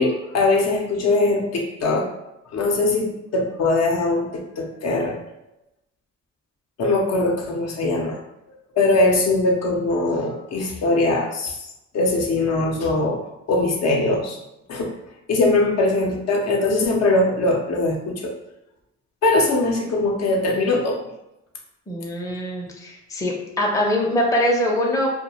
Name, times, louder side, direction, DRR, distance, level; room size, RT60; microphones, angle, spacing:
voice 1, 0.0-2.1 2.5-5.2 6.8-8.2 8.7-11.7 11.9-13.2 13.5-14.4 14.7-14.9 15.3-18.3 19.2-21.0, left 2 dB, 60° left, 1 dB, 0.5 m, -21 dB
voice 2, 21.9-25.1, left 1 dB, 10° left, -1 dB, 0.5 m, -23 dB
2.2 x 2.1 x 2.9 m, 0.88 s
cardioid pair, 90°, 30 cm